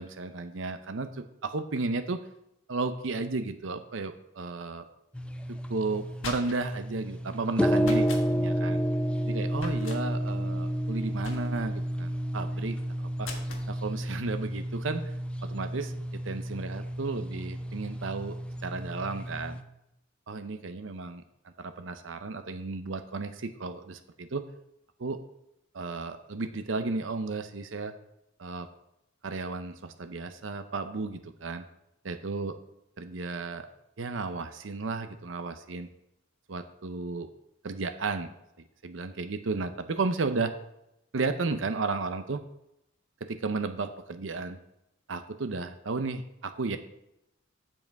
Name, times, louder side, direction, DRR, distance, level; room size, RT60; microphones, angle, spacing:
voice 1, 0.0-2.2 2.7-4.8 5.5-8.8 9.2-13.3 13.7-15.1 15.4-18.4 18.6-19.6 20.3-24.4 25.0-25.2 25.7-27.9 28.4-28.7 29.2-31.6 32.0-32.6 33.0-33.7 34.0-35.9 36.5-37.3 37.6-38.3 38.8-40.5 41.1-42.4 43.3-44.6 45.1-46.8, right 3 dB, 75° right, 9 dB, 0.6 m, -33 dB
sound 1, 5.1-19.6, equal, 5° left, 0.4 m, -31 dB
sound 2, 5.9-6.8 7.8-8.3 9.6-10.0 11.2-11.8 13.2-13.7, left 4 dB, 90° left, 1.4 m, -41 dB
7.8 x 7.4 x 4.6 m, 0.82 s
head